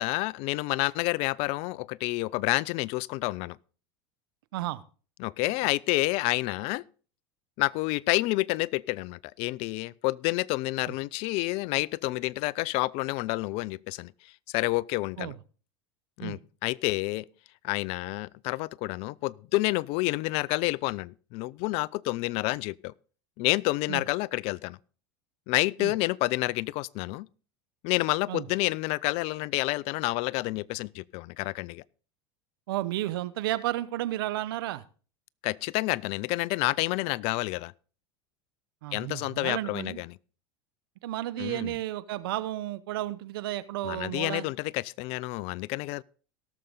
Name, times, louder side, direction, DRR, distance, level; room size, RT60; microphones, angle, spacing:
voice 1, 0.0-3.6 5.2-6.8 7.6-15.3 16.2-17.3 17.6-22.9 23.4-24.8 25.5-27.3 27.8-31.8 35.4-37.7 38.9-40.1 41.4-41.7 43.8-46.0, left 21 dB, 55° left, 0.4 m, -29 dB
voice 2, 4.5-4.8 15.2-15.4 16.2-16.4 23.9-24.0 25.8-25.9 28.3-28.5 32.7-34.8 38.8-40.0 41.0-44.5, right 15 dB, 75° right, 0.8 m, -32 dB
17.5 x 6.7 x 3.8 m
hypercardioid pair, 95°, 12 cm